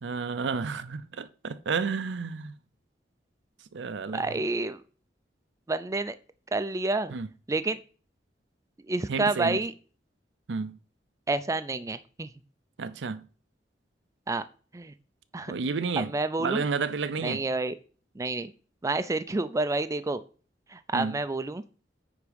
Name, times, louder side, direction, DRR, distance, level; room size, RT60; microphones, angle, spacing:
voice 1, 0.0-2.6 3.7-4.3 7.1-7.3 9.1-9.6 10.5-10.8 12.8-13.3 15.5-16.1 16.4-17.4 20.9-21.2, right 4 dB, 80° right, 0.6 m, -31 dB
voice 2, 4.1-4.8 5.7-6.1 6.5-7.2 7.5-7.8 8.9-9.7 11.3-12.3 14.3-14.4 14.7-14.9 15.3-15.6 16.0-16.6 17.2-17.8 18.2-18.5 18.8-20.2 20.7-21.6, right 3 dB, 20° right, 0.4 m, -29 dB
9.4 x 3.6 x 5.2 m
head